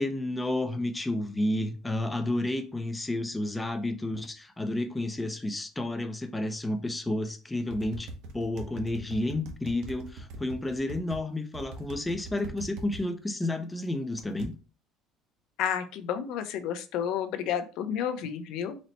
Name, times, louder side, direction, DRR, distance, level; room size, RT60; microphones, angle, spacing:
voice 1, 0.0-8.1 8.3-14.5, left 1 dB, 10° left, 0.4 m, -31 dB
sound 1, 7.7-11.2 11.5-13.0 14.2-14.5, right 2 dB, 70° right, 0.7 m, -41 dB
voice 2, 15.6-18.8, left 9 dB, 65° left, 0.5 m, -31 dB
4.1 x 2.1 x 4.0 m
cardioid pair, 160°, 0 cm